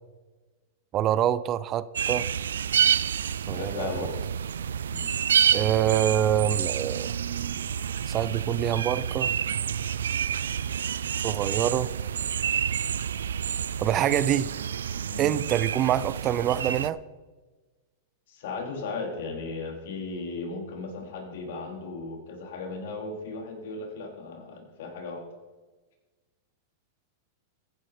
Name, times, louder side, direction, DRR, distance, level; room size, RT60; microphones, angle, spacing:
voice 1, 0.9-2.3 3.5-4.1 5.5-7.1 8.1-9.3 11.1-11.9 13.8-14.5 15.2-17.0, right 11 dB, 35° right, 17 dB, 0.5 m, -26 dB
sound 1, 2.0-16.9, right 8 dB, 90° right, 0.4 m, -28 dB
voice 2, 3.5-4.1 4.9-5.1 15.1-15.4 18.3-25.2, left 3 dB, 65° left, 3 dB, 3.7 m, -36 dB
14.5 x 10.5 x 5.1 m, 1.2 s
hypercardioid pair, 125°, 0 cm